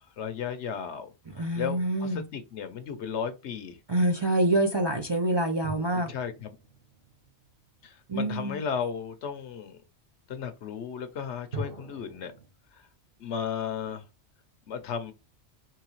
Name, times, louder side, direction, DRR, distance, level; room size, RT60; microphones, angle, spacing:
voice 1, 0.2-1.1 1.5-3.8 6.1-6.6 7.8-9.8 10.3-12.3 12.7-12.8 13.2-14.0 14.7-15.1, left 7 dB, 80° left, 1.1 m, -34 dB
voice 2, 1.3-2.2 3.9-6.1 8.1-8.6, right 1 dB, 30° right, 0.5 m, -26 dB
sound 1, 5.6-8.2 11.5-12.5, right 2 dB, 60° right, 1.7 m, -43 dB
4.8 x 3.1 x 3.0 m
omnidirectional pair, 1.2 m